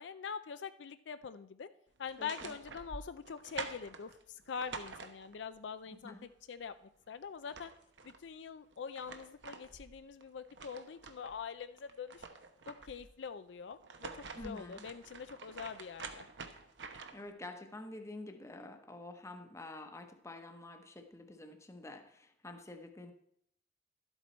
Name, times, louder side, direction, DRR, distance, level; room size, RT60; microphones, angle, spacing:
voice 1, 0.0-1.7 2.0-7.7 8.0-12.3 12.7-16.3, left 6 dB, 75° left, 12 dB, 0.4 m, -44 dB
sound 1, 2.0-5.6 7.0-7.1 7.3-8.2 8.7-11.4 11.8-13.1 13.7-17.3, right 4 dB, 75° right, 0.9 m, -48 dB
voice 2, 2.2-2.6 5.9-6.3 14.4-14.8 17.1-23.1, left 2 dB, 15° left, 5 dB, 0.9 m, -48 dB
12.0 x 8.1 x 4.4 m, 0.71 s
head